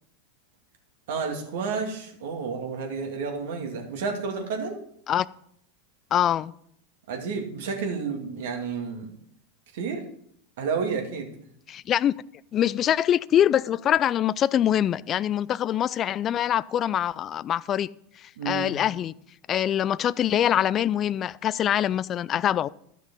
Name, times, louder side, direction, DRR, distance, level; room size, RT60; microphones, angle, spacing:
voice 1, 1.1-4.8 7.1-9.1 9.7-10.1 10.6-11.3 18.4-18.7, right 5 dB, 70° right, 2 dB, 2.3 m, -30 dB
voice 2, 6.1-6.5 11.7-12.1 12.5-17.9 18.2-19.1 19.5-22.7, left 10 dB, 35° left, 20 dB, 0.4 m, -24 dB
12.5 x 6.2 x 5.5 m, 0.69 s
hypercardioid pair, 95°, 0 cm